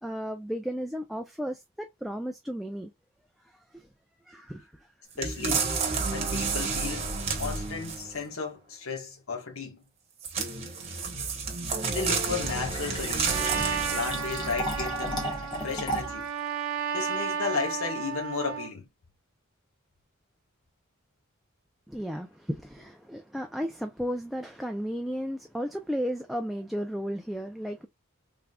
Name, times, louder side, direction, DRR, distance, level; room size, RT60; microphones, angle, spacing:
voice 1, 0.0-2.9 3.4-3.9 4.3-4.9 5.5-5.6 21.9-27.9, equal, ahead, 0.3 m, -34 dB
voice 2, 5.2-5.6 6.1-9.8 11.9-13.4 13.9-15.3 15.6-16.3 16.9-18.8, left 5 dB, 85° left, 1.3 m, -34 dB
sound 1, 5.2-8.2 10.2-14.4 15.0-15.1, right 4 dB, 30° right, 1.0 m, -30 dB
Fill (with liquid), 12.3-16.3, equal, 20° left, 1.4 m, -35 dB
Trumpet, 13.2-18.7, right 7 dB, 90° right, 1.0 m, -33 dB
3.6 x 3.4 x 2.2 m
head